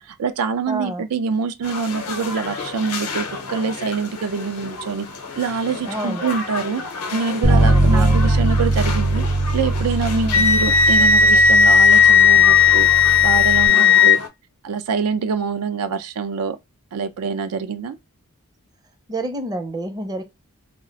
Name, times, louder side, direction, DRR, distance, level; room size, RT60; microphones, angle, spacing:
voice 1, 0.0-5.1 5.3-6.8 7.1-9.2 9.5-12.9 13.2-14.2 14.6-16.6 16.9-18.0, right 5 dB, 85° right, 0.4 m, -25 dB
voice 2, 0.7-1.0 5.9-6.3 7.5-8.3 10.1-10.4 13.7-14.0 19.1-20.2, right 1 dB, 15° right, 0.5 m, -29 dB
sound 1, 1.6-14.3, left 4 dB, 90° left, 0.7 m, -32 dB
Bass guitar, 7.4-13.7, right 2 dB, 45° right, 0.8 m, -21 dB
Wind instrument woodwind instrument, 10.3-14.2, left 6 dB, 60° left, 0.6 m, -13 dB
2.4 x 2.0 x 3.9 m
head